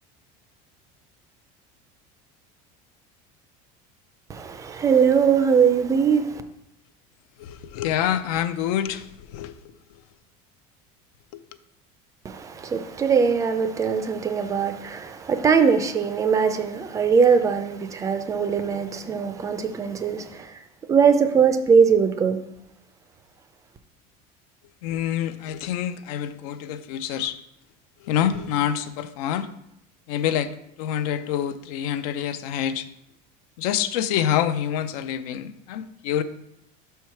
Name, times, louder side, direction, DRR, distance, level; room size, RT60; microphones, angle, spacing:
voice 1, 4.3-6.4 12.2-20.5 20.9-22.4, right 6 dB, 15° right, 0.4 m, -21 dB
voice 2, 7.4-9.6 11.3-11.4 24.8-27.4 28.0-29.5 30.1-30.5 30.8-32.9 33.6-36.2, left 10 dB, 85° left, 0.6 m, -26 dB
5.4 x 4.6 x 5.8 m
cardioid pair, 170°, 19 cm